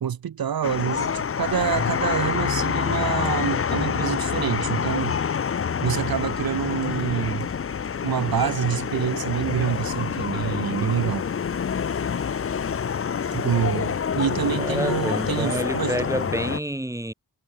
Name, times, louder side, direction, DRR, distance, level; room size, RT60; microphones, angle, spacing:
voice 1, 0.0-5.2 5.8-7.5 8.0-11.2 13.3-16.0, right 9 dB, 60° right, 0.7 m, -26 dB
sound 1, 0.6-16.6, left 7 dB, 35° left, 0.5 m, -27 dB
voice 2, 14.6-17.1, right 1 dB, 10° right, 1.1 m, -28 dB
wide cardioid pair, 80°, 40 cm